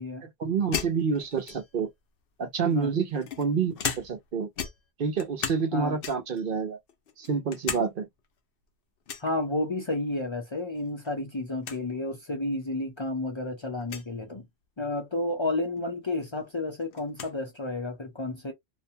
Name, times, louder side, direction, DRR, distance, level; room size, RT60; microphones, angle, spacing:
voice 1, 0.4-1.9 2.4-4.5 5.0-6.8 7.2-8.1, right 5 dB, 60° right, 0.8 m, -28 dB
sound 1, 0.7-1.9 2.7-4.3 4.6-5.7 6.0-6.4 6.9-7.9 8.2-8.3 9.1-9.3 10.8-11.1 11.4-11.5 11.6-11.8 12.6-12.7 13.8-14.1 15.8-15.9 16.2-17.4, left 7 dB, 65° left, 0.8 m, -36 dB
voice 2, 9.2-14.5 14.8-18.5, left 2 dB, 35° left, 0.6 m, -31 dB
2.6 x 2.2 x 2.7 m
omnidirectional pair, 1.1 m